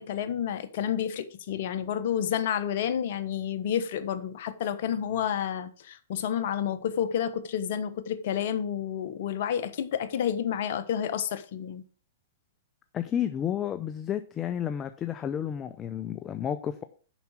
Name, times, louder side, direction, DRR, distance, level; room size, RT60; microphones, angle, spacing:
voice 1, 0.0-11.8, left 9 dB, 60° left, 1.1 m, -30 dB
voice 2, 12.9-16.8, left 9 dB, 25° left, 0.6 m, -31 dB
7.1 x 5.9 x 7.4 m
hypercardioid pair, 125°, 0 cm